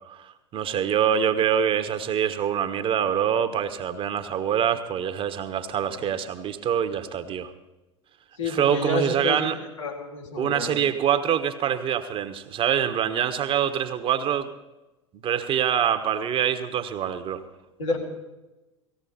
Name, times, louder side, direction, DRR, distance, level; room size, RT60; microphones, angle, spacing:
voice 1, 0.1-7.5 8.4-9.6 10.4-14.5 15.2-17.4, right 9 dB, 35° right, 9 dB, 1.2 m, -25 dB
voice 2, 8.4-10.8 17.8-18.0, left 2 dB, 80° left, -2 dB, 4.0 m, -30 dB
18.0 x 15.5 x 4.3 m, 1.0 s
figure-of-eight pair, 80°, 16 cm